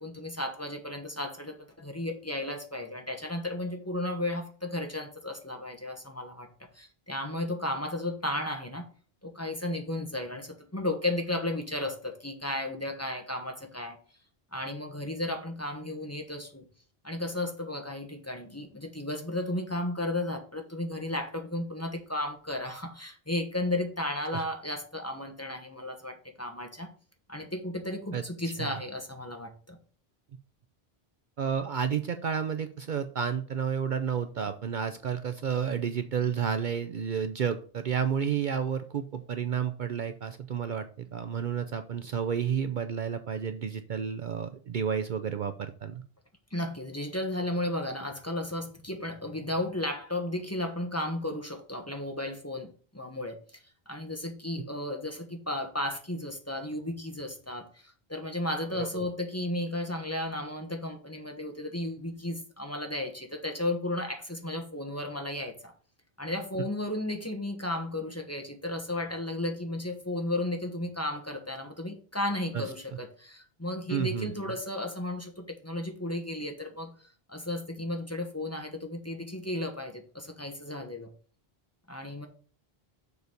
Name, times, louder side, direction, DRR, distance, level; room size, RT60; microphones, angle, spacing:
voice 1, 0.0-8.9 9.2-14.0 14.5-16.6 17.0-26.9 27.3-29.8 46.5-65.7 66.2-76.9 77.3-81.1 81.9-82.3, left 1 dB, 15° left, 4 dB, 1.1 m, -34 dB
voice 2, 28.1-28.8 31.4-46.0 58.7-59.0 72.5-72.6 73.9-74.3, right 7 dB, 55° right, 9 dB, 0.7 m, -31 dB
6.9 x 4.0 x 6.5 m, 0.42 s
omnidirectional pair, 1.0 m